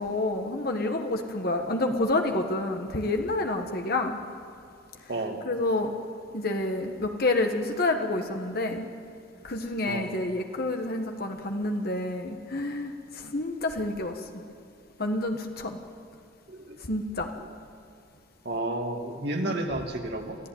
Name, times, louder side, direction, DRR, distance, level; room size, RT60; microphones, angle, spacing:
voice 1, 0.0-4.2 5.4-5.9 6.3-8.9 9.4-14.4 15.0-15.8 16.9-17.3 19.4-19.5, left 2 dB, 50° left, 4 dB, 1.6 m, -28 dB
voice 2, 5.1-5.4 9.9-10.2 16.5-16.8 17.4-17.5 18.4-20.4, right 1 dB, 60° right, 2 dB, 2.6 m, -32 dB
25.0 x 16.0 x 9.4 m, 2.5 s
head